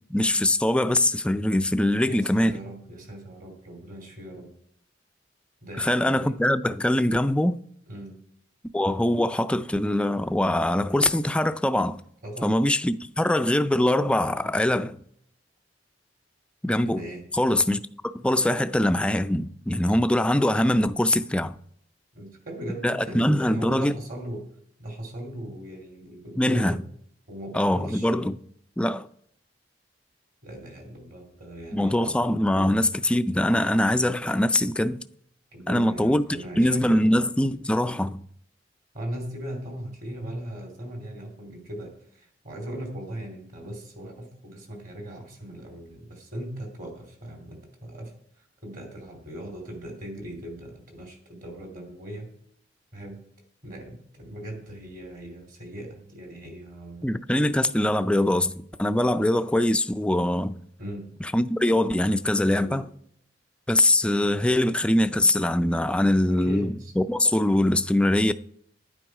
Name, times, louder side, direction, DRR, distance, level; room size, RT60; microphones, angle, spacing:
voice 1, 0.1-2.5 5.8-7.6 8.7-12.0 12.4-15.0 16.6-17.0 17.4-17.8 18.2-21.5 22.8-23.9 26.4-26.8 27.5-28.4 28.8-29.1 31.7-35.0 35.7-36.2 36.6-38.2 57.0-60.6 61.3-62.9 63.7-68.3, left 1 dB, 5° left, 0.3 m, -23 dB
voice 2, 2.0-4.5 5.6-6.3 7.9-8.2 12.2-12.5 16.9-17.2 22.1-26.8 27.3-28.1 30.4-32.2 32.5-32.8 35.5-37.1 38.9-52.3 52.9-53.3 53.6-57.1 57.3-57.5 60.8-61.1 62.4-62.8 66.3-66.9, right 1 dB, 50° right, 2.9 m, -39 dB
11.0 x 9.1 x 4.8 m
head